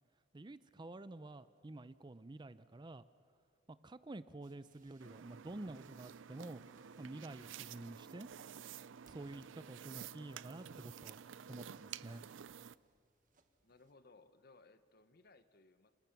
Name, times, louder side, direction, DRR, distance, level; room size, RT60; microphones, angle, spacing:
voice 1, 0.3-3.1 3.7-6.6 7.0-8.3 9.1-11.2 11.5-12.2, right 2 dB, 25° right, 14 dB, 0.5 m, -49 dB
sound 1, 4.4-13.9, right 3 dB, 45° right, 1.4 m, -72 dB
sound 2, 5.0-12.8, right 8 dB, 85° right, 0.5 m, -51 dB
voice 2, 13.6-15.9, left 3 dB, 55° left, 11 dB, 1.1 m, -63 dB
29.5 x 20.5 x 6.0 m, 2.2 s
head